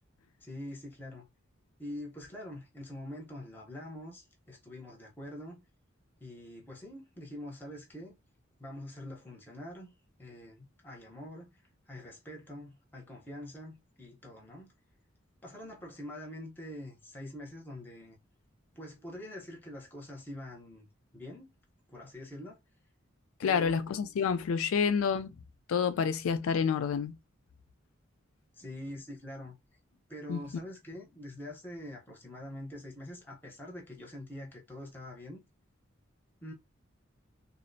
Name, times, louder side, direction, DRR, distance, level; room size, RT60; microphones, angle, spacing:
voice 1, 0.4-1.2 1.8-5.6 6.2-8.2 8.6-11.6 11.9-14.7 15.4-18.2 18.8-20.9 21.1-21.5 21.9-22.6 23.4-23.9 28.5-29.6 30.1-35.4 36.4-36.5, left 1 dB, 10° left, 0.6 m, -45 dB
voice 2, 23.4-25.4 25.7-27.2 30.3-30.4, left 6 dB, 90° left, 0.3 m, -28 dB
2.4 x 2.0 x 2.5 m
head